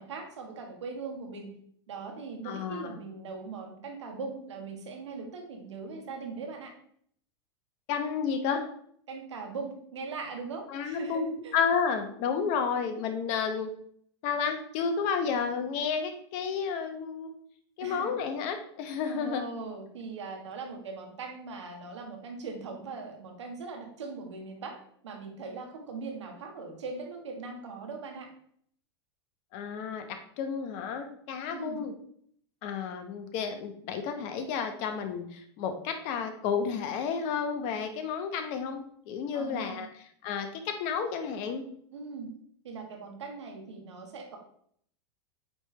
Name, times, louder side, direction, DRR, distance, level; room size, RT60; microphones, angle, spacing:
voice 1, 0.0-1.5 1.9-6.7 9.1-11.6 12.4-12.6 17.8-18.1 19.1-24.8 25.0-28.3 31.5-31.8 39.3-39.8 41.9-42.3 42.6-44.4, right 4 dB, 85° right, 3 dB, 1.5 m, -40 dB
voice 2, 2.4-3.0 7.9-8.6 10.7-13.7 14.2-17.3 17.8-19.5 29.5-31.9 32.6-39.9 40.2-41.6, left 6 dB, 50° left, 7 dB, 1.0 m, -31 dB
8.6 x 3.4 x 3.3 m, 0.64 s
hypercardioid pair, 110°, 15 cm